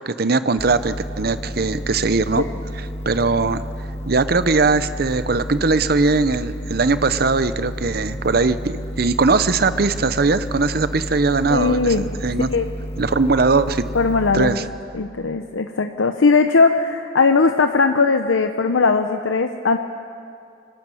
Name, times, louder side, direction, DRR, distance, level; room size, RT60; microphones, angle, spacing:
voice 1, 0.1-2.4 2.8-3.6 4.1-12.5 13.0-13.8 14.3-14.6, right 3 dB, 50° right, 13 dB, 0.7 m, -20 dB
sound 1, 0.6-14.5, equal, 15° left, 1.9 m, -31 dB
voice 2, 11.5-12.0 12.4-12.7 13.9-14.6 14.9-19.8, left 4 dB, 90° left, 7 dB, 0.7 m, -18 dB
24.0 x 12.5 x 9.0 m, 2.5 s
head